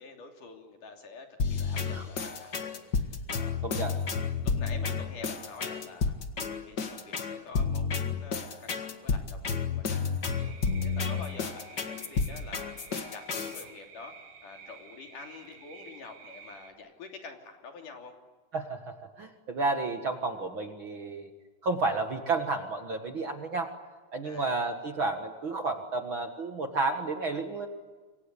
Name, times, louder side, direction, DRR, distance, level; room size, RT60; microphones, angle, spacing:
voice 1, 0.0-3.6 4.4-12.7 13.1-14.2 14.4-18.1 24.2-24.6, left 4 dB, 65° left, 3 dB, 4.6 m, -47 dB
sound 1, 1.4-13.6, left 5 dB, 40° left, 1.8 m, -31 dB
voice 2, 3.6-3.9 18.5-21.3 21.6-23.7 24.1-27.7, right 3 dB, 45° right, 5 dB, 1.9 m, -31 dB
sound 2, 10.2-16.7, right 6 dB, 65° right, 6.2 m, -51 dB
28.5 x 24.5 x 8.5 m, 1.3 s
omnidirectional pair, 4.0 m